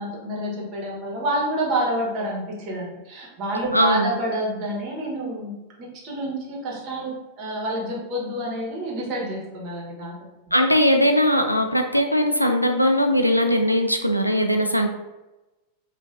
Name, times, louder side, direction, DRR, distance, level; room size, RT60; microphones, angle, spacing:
voice 1, 0.0-5.5 5.8-10.1, right 1 dB, 40° right, -2 dB, 1.3 m, -28 dB
voice 2, 3.7-4.1 10.5-14.9, equal, 90° left, 4 dB, 0.4 m, -20 dB
5.2 x 2.6 x 2.5 m, 1.0 s
figure-of-eight pair, 90°, 0 cm